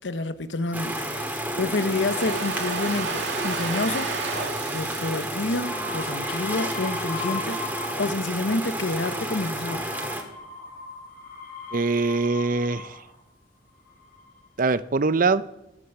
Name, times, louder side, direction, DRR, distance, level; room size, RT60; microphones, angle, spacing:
voice 1, 0.0-4.1 4.7-9.9, left 2 dB, 90° left, 0.9 m, -29 dB
sound 1, 0.7-10.2, right 1 dB, 10° right, 2.1 m, -31 dB
Domestic sounds home sounds, 1.6-6.6, right 5 dB, 85° right, 2.2 m, -33 dB
sound 2, 5.6-8.2 8.5-13.1 13.8-14.4, left 4 dB, 55° left, 4.4 m, -39 dB
voice 2, 11.7-12.9 14.6-15.4, right 3 dB, 50° right, 0.6 m, -23 dB
14.5 x 13.0 x 7.0 m
head